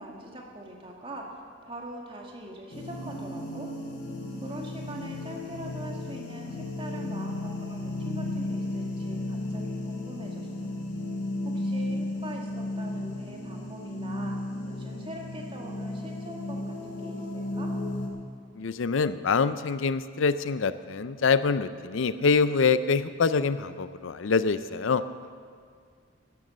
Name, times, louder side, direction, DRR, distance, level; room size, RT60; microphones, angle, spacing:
voice 1, 0.0-3.7 4.4-10.5 11.5-14.3 14.7-17.7, right 1 dB, 25° right, 0 dB, 1.9 m, -43 dB
sound 1, 2.7-18.1, left 1 dB, 60° left, 2.5 m, -34 dB
voice 2, 18.6-25.0, left 5 dB, 80° left, 13 dB, 0.5 m, -25 dB
13.0 x 10.5 x 7.4 m, 2.2 s
head